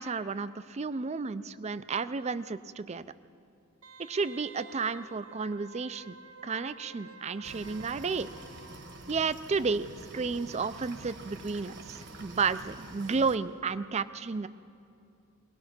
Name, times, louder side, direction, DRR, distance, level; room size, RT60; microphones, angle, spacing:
voice 1, 0.0-3.1 4.1-6.2 6.4-8.3 9.1-9.9 10.1-14.5, right 4 dB, 30° right, 14 dB, 0.4 m, -32 dB
Wind instrument woodwind instrument, 3.8-9.4 9.7-9.8, right 3 dB, 75° right, 0.8 m, -51 dB
sound 1, 7.4-13.4, right 2 dB, 55° right, 1.2 m, -47 dB
23.0 x 18.5 x 6.1 m, 2.6 s
head